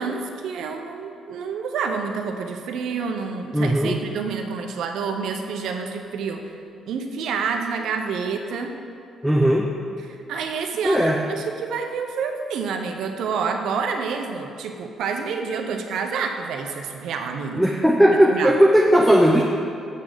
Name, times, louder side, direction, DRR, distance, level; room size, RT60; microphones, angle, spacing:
voice 1, 0.0-6.5 6.9-8.7 10.0-17.6 18.3-18.5, right 5 dB, 80° right, 4 dB, 0.7 m, -28 dB
voice 2, 3.5-4.0 9.2-9.7 10.8-11.2 17.6-19.4, equal, ahead, -1 dB, 0.6 m, -17 dB
7.4 x 3.9 x 6.6 m, 2.5 s
cardioid pair, 90°, 0 cm